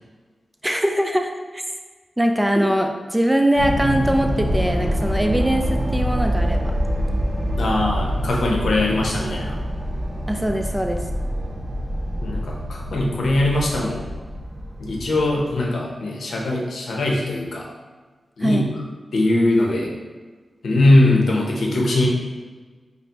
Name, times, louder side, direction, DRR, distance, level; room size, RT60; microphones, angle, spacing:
voice 1, 0.6-1.6 2.2-6.7 10.3-11.0 18.4-18.7, equal, 10° right, 4 dB, 0.4 m, -22 dB
sound 1, 3.6-15.6, equal, 60° right, 0.7 m, -25 dB
voice 2, 7.6-9.6 12.2-14.1 14.8-17.7 18.4-18.6 19.1-19.9 20.6-22.1, left 1 dB, 80° left, -1 dB, 0.7 m, -21 dB
5.3 x 2.1 x 2.9 m, 1.4 s
cardioid pair, 45°, 0 cm